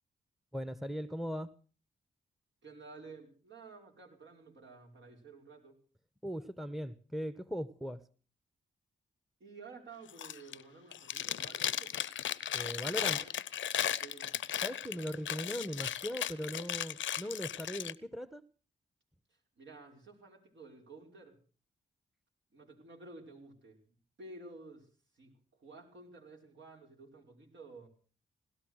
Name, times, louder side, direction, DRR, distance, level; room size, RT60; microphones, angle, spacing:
voice 1, 0.5-1.5 6.2-8.0 12.5-13.2 14.6-18.4, equal, ahead, 14 dB, 1.1 m, -39 dB
voice 2, 2.6-5.8 9.4-13.3 14.0-14.3 19.6-21.4 22.5-23.8 24.2-24.9 25.2-25.3 25.6-27.9, right 3 dB, 65° right, 0 dB, 5.4 m, -53 dB
Chewing mastication, 10.1-10.6 10.9-17.9, left 10 dB, 70° left, 0.7 m, -36 dB
17.5 x 12.5 x 6.4 m, 0.40 s
supercardioid pair, 45°, 21 cm